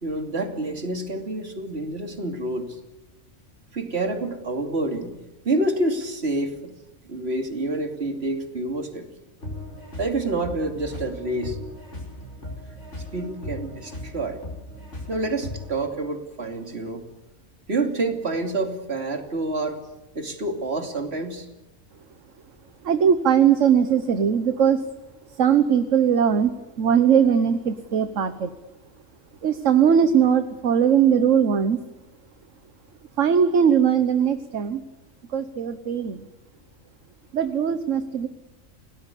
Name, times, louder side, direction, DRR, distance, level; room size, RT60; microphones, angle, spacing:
voice 1, 0.0-2.8 3.7-5.2 5.4-6.7 7.0-9.1 10.0-11.6 13.1-14.4 15.1-17.0 17.7-19.8 20.1-21.5, right 2 dB, 50° right, 6 dB, 3.0 m, -28 dB
sound 1, 9.4-15.9, left 1 dB, 60° left, 5.8 m, -37 dB
voice 2, 22.8-24.8 25.4-28.5 29.4-31.8 33.2-34.8 35.3-36.3 37.3-38.3, right 8 dB, 70° right, 10 dB, 1.5 m, -20 dB
29.0 x 18.0 x 8.4 m, 1.0 s
omnidirectional pair, 1.4 m